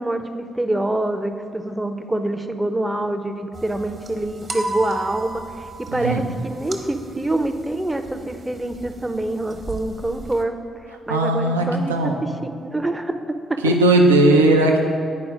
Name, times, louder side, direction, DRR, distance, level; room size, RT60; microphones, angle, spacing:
voice 1, 0.0-13.8, right 1 dB, 15° right, 7 dB, 0.6 m, -26 dB
sound 1, 3.5-10.4, right 2 dB, 40° right, 0.9 m, -35 dB
voice 2, 11.1-12.2 13.6-14.8, right 1 dB, 85° right, 2 dB, 0.5 m, -17 dB
9.5 x 4.7 x 5.1 m, 2.3 s
figure-of-eight pair, 40°, 0 cm